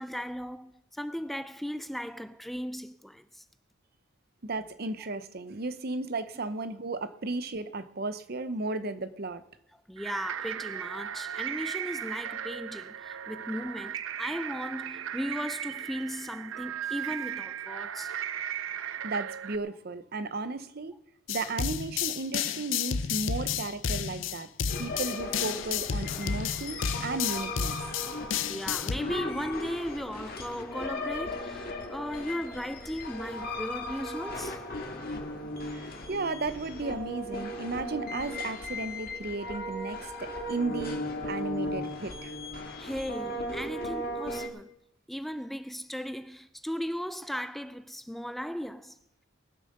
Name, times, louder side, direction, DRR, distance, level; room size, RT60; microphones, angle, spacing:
voice 1, 0.0-3.4 9.9-18.2 28.5-34.6 42.8-44.7 45.1-49.0, equal, ahead, 0.4 m, -36 dB
voice 2, 4.4-9.4 19.0-21.0 21.3-24.5 24.8-27.9 35.7-42.4, right 3 dB, 50° right, 0.8 m, -34 dB
sound 1, 10.0-19.6, right 9 dB, 90° right, 0.5 m, -37 dB
sound 2, 21.3-29.0, left 7 dB, 75° left, 0.6 m, -31 dB
sound 3, 24.7-44.5, left 1 dB, 50° left, 2.0 m, -37 dB
20.0 x 7.5 x 6.6 m
head